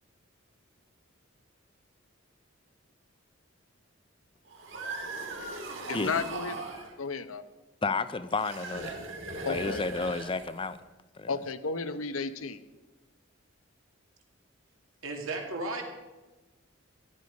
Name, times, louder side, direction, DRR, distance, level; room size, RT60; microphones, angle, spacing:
sound 1, 4.5-6.9 8.3-10.8, right 2 dB, 65° right, 2.9 m, -39 dB
voice 1, 5.9-6.6 7.0-7.4 9.4-9.8 11.3-12.6, left 4 dB, 85° left, 11 dB, 0.9 m, -33 dB
voice 2, 7.8-8.9 9.5-10.8 11.1-11.3, left 3 dB, 25° left, 13 dB, 0.4 m, -31 dB
voice 3, 15.0-15.8, right 2 dB, 85° right, 2 dB, 2.6 m, -34 dB
14.5 x 11.0 x 5.3 m, 1.2 s
head